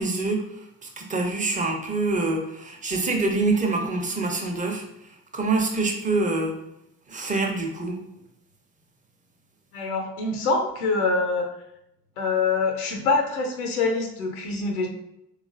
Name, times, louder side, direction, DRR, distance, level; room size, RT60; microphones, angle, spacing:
voice 1, 0.0-4.8 5.3-6.5 7.1-8.0, right 3 dB, 20° right, 2 dB, 0.8 m, -25 dB
voice 2, 9.7-11.5 12.2-14.9, left 3 dB, 85° left, 3 dB, 0.5 m, -25 dB
3.6 x 3.1 x 2.4 m, 0.82 s
figure-of-eight pair, 45°, 43 cm